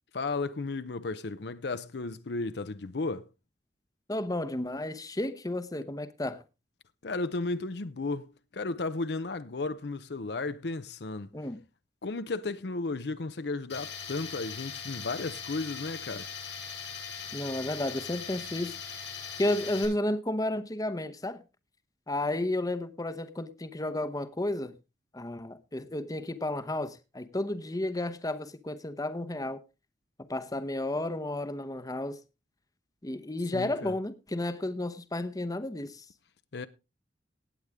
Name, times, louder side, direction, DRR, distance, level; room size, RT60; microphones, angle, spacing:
voice 1, 0.1-3.3 7.0-11.3 12.0-16.3 33.5-33.9 36.5-36.7, left 3 dB, 65° left, 0.7 m, -34 dB
voice 2, 4.1-6.4 11.3-11.6 17.3-18.7 19.4-21.4 22.1-24.7 25.1-29.6 30.3-32.2 33.0-36.0, left 1 dB, 20° left, 0.8 m, -32 dB
Tools, 13.7-19.8, left 7 dB, 90° left, 7.0 m, -40 dB
17.5 x 8.2 x 3.6 m
head